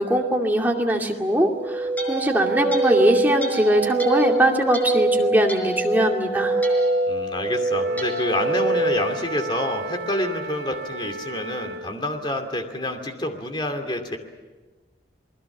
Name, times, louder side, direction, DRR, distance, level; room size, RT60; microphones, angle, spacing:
voice 1, 0.0-6.6, right 1 dB, 10° right, 0 dB, 2.4 m, -21 dB
sound 1, 1.4-9.8, right 2 dB, 10° left, 4.8 m, -24 dB
voice 2, 7.1-14.2, left 1 dB, 25° left, 5 dB, 2.6 m, -28 dB
Wind instrument woodwind instrument, 7.7-12.1, right 3 dB, 80° right, 2.6 m, -35 dB
28.5 x 20.5 x 7.3 m, 1.3 s
head